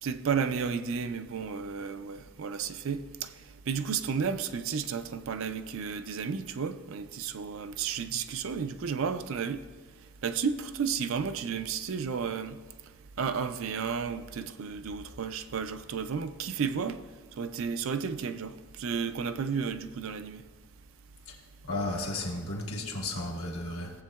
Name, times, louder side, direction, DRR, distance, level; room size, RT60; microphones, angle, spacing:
voice 1, 0.0-3.3 3.7-9.6 10.2-12.6 13.2-17.0 17.4-20.4, right 6 dB, 60° right, 0.4 m, -32 dB
voice 2, 21.7-23.9, left 2 dB, 70° left, 1.3 m, -33 dB
15.5 x 7.6 x 2.3 m
head